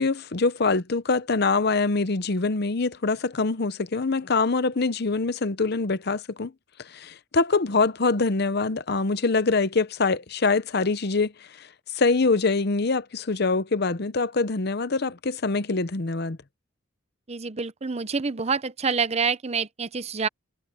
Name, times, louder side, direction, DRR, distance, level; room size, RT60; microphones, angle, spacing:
voice 1, 0.0-6.5 6.9-11.3 11.6-11.7 11.9-16.4, left 3 dB, 55° left, 0.8 m, -24 dB
voice 2, 17.3-20.3, right 5 dB, 35° right, 0.7 m, -27 dB
head